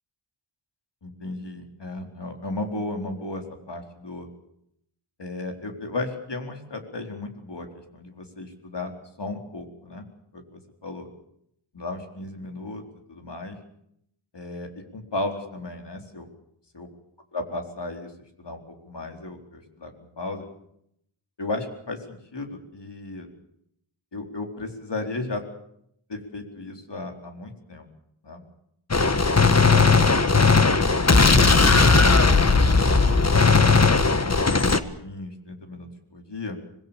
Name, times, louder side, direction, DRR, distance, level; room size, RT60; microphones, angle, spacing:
voice 1, 1.0-4.3 5.2-8.9 9.2-10.1 10.3-11.1 11.7-12.8 13.1-13.6 14.3-16.3 16.7-16.9 17.3-18.1 18.4-20.5 21.4-23.3 24.1-25.4 26.1-27.9 28.2-28.4 31.3-33.4 34.2-36.6, left 2 dB, 55° left, 4 dB, 4.4 m, -35 dB
Gunshot gunfire, 28.9-34.8, left 4 dB, 30° left, 1.5 m, -17 dB
25.5 x 21.0 x 7.2 m, 0.74 s
wide cardioid pair, 80°, 50 cm